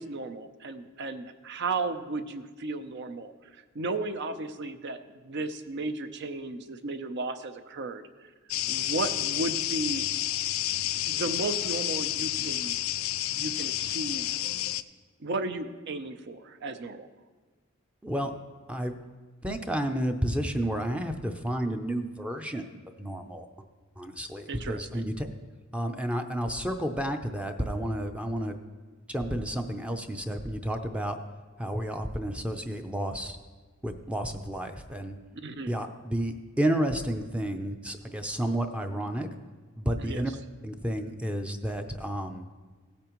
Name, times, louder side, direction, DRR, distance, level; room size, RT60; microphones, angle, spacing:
voice 1, 0.0-8.0 8.7-10.1 11.0-12.8 13.4-14.4 15.2-17.1 24.5-25.1 35.4-35.7 40.0-40.2, right 3 dB, 55° right, 9 dB, 0.6 m, -34 dB
sound 1, 8.5-14.8, left 14 dB, 75° left, 0.4 m, -30 dB
voice 2, 18.0-18.3 18.7-18.9 19.4-22.7 23.0-23.4 24.0-25.3 25.7-28.6 29.1-31.2 31.6-33.4 33.8-35.2 35.7-39.3 39.8-40.3 40.6-42.4, right 1 dB, 5° right, 5 dB, 0.5 m, -31 dB
16.5 x 8.5 x 3.1 m, 1.4 s
head